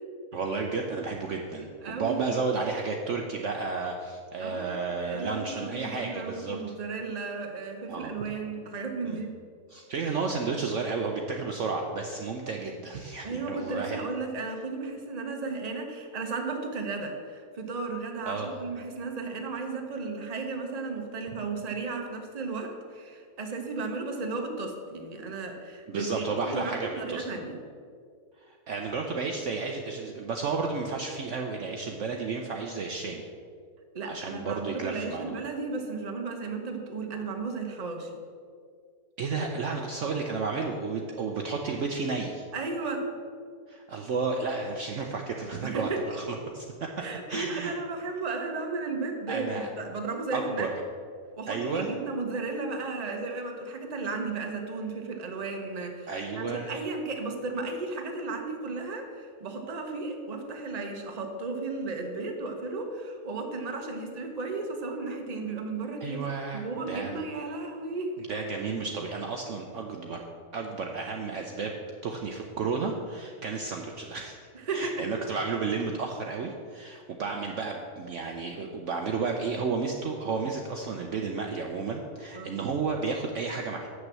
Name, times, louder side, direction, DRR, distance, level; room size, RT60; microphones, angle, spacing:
voice 1, 0.3-6.6 7.9-8.1 9.0-9.2 9.7-14.0 18.3-18.6 25.9-27.2 28.4-33.3 34.0-35.3 39.2-42.5 43.7-46.9 47.3-47.7 49.3-49.7 50.3-50.7 51.5-51.9 56.1-56.7 66.0-67.3 68.3-70.2 70.5-71.8 72.0-74.4 74.7-83.9, right 4 dB, 60° right, 2 dB, 0.9 m, -32 dB
voice 2, 1.8-2.3 4.4-4.7 5.0-9.3 13.2-27.6 33.9-38.1 42.5-43.1 45.6-46.1 47.0-50.7 51.3-66.2 66.5-68.2 74.5-75.1 82.3-82.5, right 3 dB, 30° right, 3 dB, 1.0 m, -34 dB
7.3 x 6.5 x 7.4 m, 2.1 s
omnidirectional pair, 1.6 m